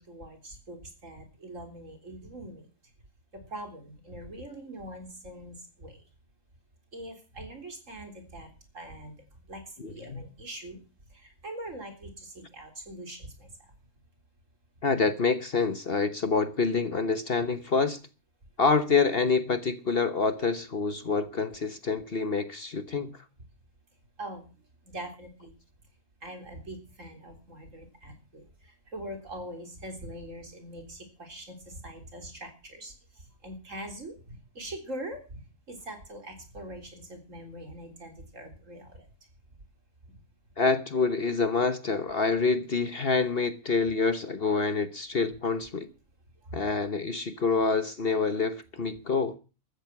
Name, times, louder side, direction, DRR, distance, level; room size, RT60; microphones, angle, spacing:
voice 1, 0.0-2.7 3.3-6.0 6.9-10.8 11.1-13.7 24.2-24.5 24.8-25.5 26.2-35.4 35.7-39.1 46.4-46.6, right 1 dB, 60° right, 4.1 m, -43 dB
voice 2, 9.8-10.2 14.8-18.0 18.6-23.1 40.6-45.9 46.5-49.4, left 4 dB, 45° left, 1.2 m, -27 dB
15.0 x 13.5 x 6.0 m
omnidirectional pair, 1.5 m